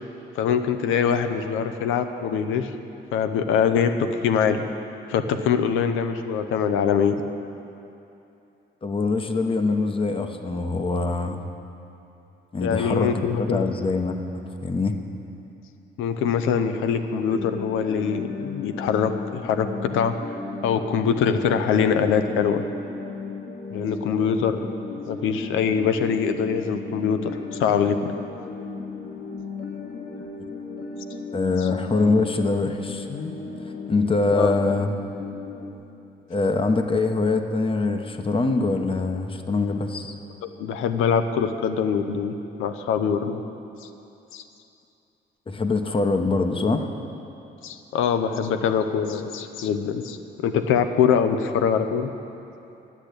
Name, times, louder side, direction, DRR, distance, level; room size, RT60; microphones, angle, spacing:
voice 1, 0.4-2.7 3.1-3.9 4.2-4.6 5.1-7.2 12.6-13.6 16.0-19.7 19.9-20.1 20.6-22.6 23.7-24.7 25.1-27.3 27.6-28.1 34.3-34.5 40.4-42.3 42.6-43.4 44.3-44.4 47.6-50.2 50.4-52.1, left 7 dB, 90° left, 8 dB, 0.8 m, -23 dB
voice 2, 8.8-11.4 12.5-15.0 31.3-33.4 33.9-34.9 36.3-40.1 45.5-46.9, left 3 dB, 25° left, 6 dB, 0.9 m, -24 dB
sound 1, 17.3-35.7, left 4 dB, 50° left, 1.5 m, -35 dB
10.5 x 8.4 x 8.3 m, 2.8 s
cardioid pair, 90°, 20 cm